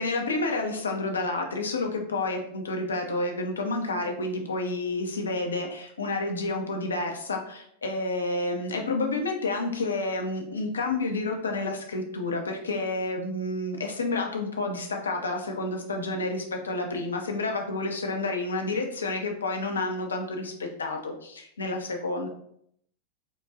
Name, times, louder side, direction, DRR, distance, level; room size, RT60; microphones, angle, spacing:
voice 1, 0.0-22.3, left 2 dB, 70° left, 3 dB, 0.7 m, -30 dB
4.6 x 2.3 x 2.7 m, 0.68 s
figure-of-eight pair, 90°, 0 cm